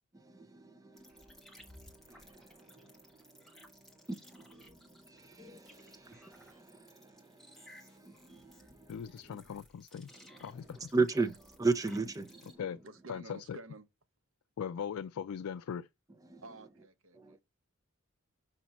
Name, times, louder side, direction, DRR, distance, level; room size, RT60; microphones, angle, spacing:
voice 1, 0.1-9.4 10.3-10.4 10.7-12.6 16.3-16.4 17.1-17.4, right 3 dB, 15° right, 0.6 m, -38 dB
sound 1, 0.9-12.6, left 1 dB, ahead, 1.2 m, -59 dB
voice 2, 8.9-10.9 12.6-12.8 13.1-13.6 14.6-15.9, left 7 dB, 85° left, 0.3 m, -40 dB
voice 3, 12.8-13.8 16.4-17.4, right 2 dB, 65° right, 0.9 m, -50 dB
6.0 x 5.0 x 4.1 m
head